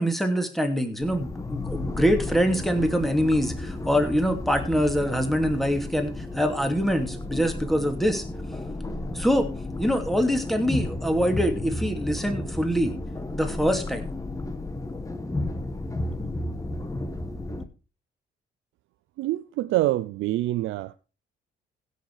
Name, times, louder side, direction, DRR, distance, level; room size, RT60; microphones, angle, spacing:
voice 1, 0.0-8.2 9.1-9.5 9.8-12.9 13.3-14.1, equal, ahead, 2.7 m, -24 dB
sound 1, 1.0-17.6, left 2 dB, 15° left, 1.4 m, -33 dB
voice 2, 19.2-20.9, right 16 dB, 85° right, 0.5 m, -26 dB
16.5 x 6.6 x 4.9 m
cardioid pair, 90°, 20 cm